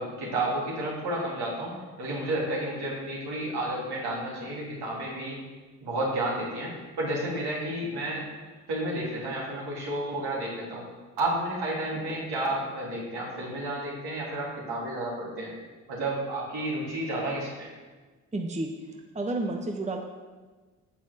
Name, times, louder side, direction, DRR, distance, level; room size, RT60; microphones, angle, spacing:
voice 1, 0.0-5.4 5.8-8.2 8.7-10.8 11.2-15.5 15.9-17.7, right 1 dB, 65° right, -4 dB, 3.1 m, -31 dB
voice 2, 18.3-20.0, right 2 dB, 15° right, 3 dB, 0.9 m, -31 dB
7.2 x 5.6 x 6.5 m, 1.3 s
hypercardioid pair, 45°, 43 cm